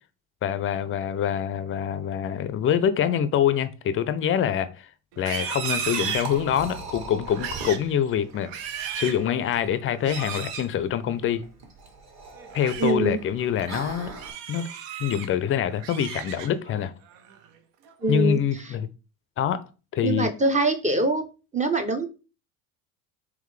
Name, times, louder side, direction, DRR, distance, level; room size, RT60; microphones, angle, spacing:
voice 1, 0.4-4.9 5.2-11.4 12.5-14.1 14.5-14.7 15.0-16.9 18.1-18.9 19.4-19.6 19.9-20.3, left 9 dB, 30° left, 0.5 m, -25 dB
Livestock farm animals working animals, 5.1-6.8 7.3-7.9 8.3-9.3 10.0-10.7 12.4-12.9 13.4-13.7 14.1-15.3 15.7-16.7 17.1-17.4 17.9-18.3, right 8 dB, 65° right, 0.8 m, -34 dB
Liquid, 5.8-14.3, right 3 dB, 35° right, 1.5 m, -41 dB
voice 2, 12.8-13.2 18.0-18.4 20.0-21.2 21.5-22.1, right 2 dB, 15° right, 0.6 m, -23 dB
3.7 x 3.1 x 3.2 m
hypercardioid pair, 75°, 44 cm